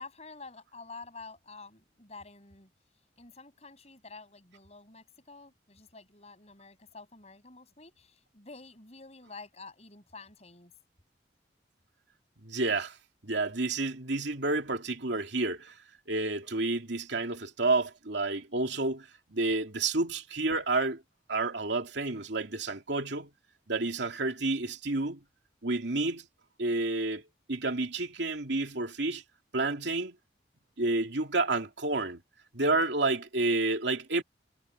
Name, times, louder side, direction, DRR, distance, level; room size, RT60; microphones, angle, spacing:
voice 1, 0.0-2.7 3.2-10.7, left 3 dB, 35° left, 7.1 m, -49 dB
voice 2, 12.4-13.0 13.2-15.7 16.1-21.0 21.3-23.3 23.7-25.2 25.6-26.3 26.6-27.2 27.5-29.2 29.5-30.1 30.8-32.2 32.5-34.2, right 3 dB, 75° right, 2.7 m, -30 dB
head